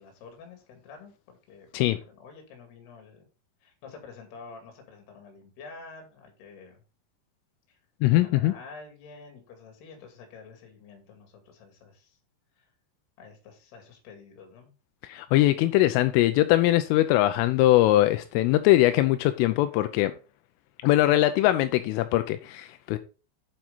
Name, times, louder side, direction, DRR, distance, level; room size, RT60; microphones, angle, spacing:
voice 1, 0.0-3.3 3.6-6.8 7.7-7.8 8.1-12.2 12.6-12.7 13.2-14.7, left 4 dB, 60° left, 3 dB, 4.1 m, -48 dB
voice 2, 8.0-8.5 15.0-20.1 20.8-23.0, left 15 dB, 85° left, 10 dB, 3.2 m, -21 dB
9.2 x 7.4 x 4.0 m, 0.33 s
omnidirectional pair, 5.7 m